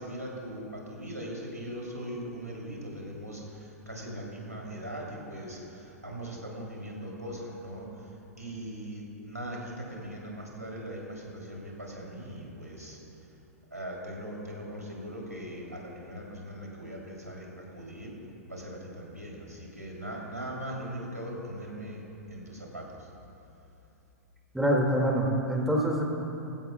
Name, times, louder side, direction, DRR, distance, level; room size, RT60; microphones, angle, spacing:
voice 1, 0.0-3.4 3.9-5.6 6.0-7.9 8.4-13.0 13.7-18.1 18.5-22.0 22.3-22.8, equal, 85° right, -2 dB, 2.9 m, -40 dB
voice 2, 24.5-26.0, equal, 5° right, -1 dB, 2.0 m, -25 dB
19.5 x 16.0 x 2.2 m, 2.8 s
figure-of-eight pair, 100°, 8 cm